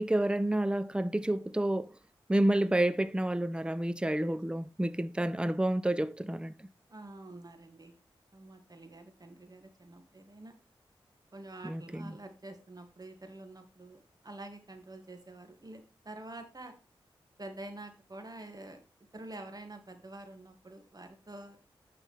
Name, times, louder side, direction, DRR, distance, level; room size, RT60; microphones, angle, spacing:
voice 1, 0.0-1.9 2.3-6.5 11.6-12.1, right 1 dB, 10° right, 0.6 m, -29 dB
voice 2, 6.9-8.0 8.3-10.6 11.3-16.8 17.4-18.8 19.1-21.6, right 2 dB, 40° right, 2.4 m, -47 dB
9.3 x 5.8 x 3.5 m
cardioid pair, 45°, 10 cm